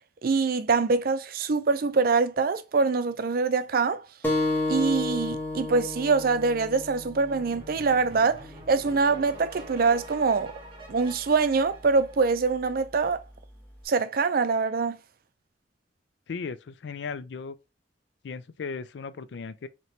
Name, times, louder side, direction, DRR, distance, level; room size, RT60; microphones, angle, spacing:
voice 1, 0.2-4.0 4.7-10.5 10.9-13.2 13.9-15.0, right 4 dB, 55° right, 0.5 m, -24 dB
sound 1, 4.2-9.4, left 2 dB, 10° left, 0.9 m, -32 dB
sound 2, 7.3-12.8, right 1 dB, 30° right, 1.2 m, -47 dB
voice 2, 16.3-17.5 18.2-19.7, left 5 dB, 75° left, 0.4 m, -36 dB
4.2 x 2.9 x 3.1 m
head